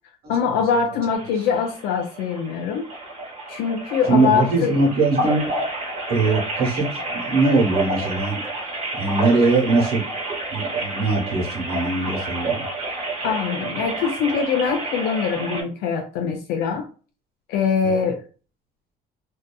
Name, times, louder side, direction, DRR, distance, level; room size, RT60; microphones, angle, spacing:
voice 1, 0.3-2.9 3.5-4.8 13.2-16.9 17.5-18.2, left 6 dB, 80° left, 3 dB, 0.4 m, -23 dB
sound 1, 1.2-15.6, right 2 dB, 40° right, 1.0 m, -29 dB
voice 2, 4.1-5.4 6.1-8.4 9.0-10.0 10.5-12.7, right 3 dB, 65° right, 0 dB, 1.1 m, -21 dB
2.6 x 2.4 x 2.2 m, 0.37 s
cardioid pair, 110°, 17 cm